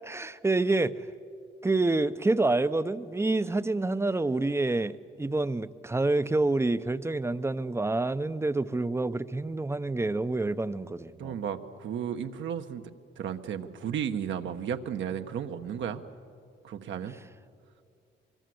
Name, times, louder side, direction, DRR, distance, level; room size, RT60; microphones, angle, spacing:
voice 1, 0.0-1.1 1.6-11.4, right 2 dB, 15° right, 14 dB, 0.7 m, -27 dB
voice 2, 11.2-12.8 13.2-16.0 16.6-17.1, right 8 dB, 70° right, 7 dB, 1.2 m, -34 dB
24.0 x 23.0 x 7.8 m, 2.3 s
cardioid pair, 90°, 20 cm